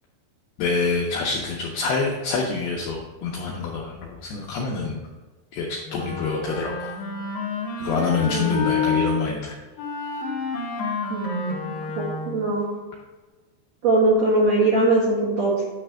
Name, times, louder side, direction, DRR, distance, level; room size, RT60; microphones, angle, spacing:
voice 1, 0.6-5.0 5.5-6.9 7.8-9.5, left 4 dB, 85° left, -2 dB, 2.2 m, -26 dB
Wind instrument woodwind instrument, 5.9-9.1 9.8-12.5, left 4 dB, 65° left, 2.5 m, -29 dB
voice 2, 11.1-11.7 12.2-12.7 13.8-15.6, right 2 dB, 80° right, -7 dB, 1.5 m, -21 dB
9.3 x 3.3 x 6.1 m, 1.2 s
omnidirectional pair, 5.5 m